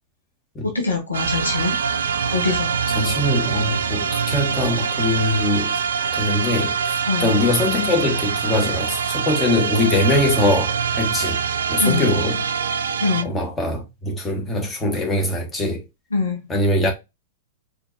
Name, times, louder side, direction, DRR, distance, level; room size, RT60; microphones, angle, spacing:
voice 1, 0.6-1.8 2.3-2.7 7.0-7.3 11.8-12.1 13.0-13.3 16.1-16.4, left 4 dB, 85° left, 1.3 m, -23 dB
sound 1, 1.1-13.2, right 6 dB, 70° right, 0.4 m, -24 dB
voice 2, 2.9-5.8 6.1-11.4 11.7-12.4 13.2-15.8 16.5-16.9, left 2 dB, 15° left, 1.5 m, -22 dB
4.4 x 3.1 x 2.6 m
figure-of-eight pair, 105°, 0 cm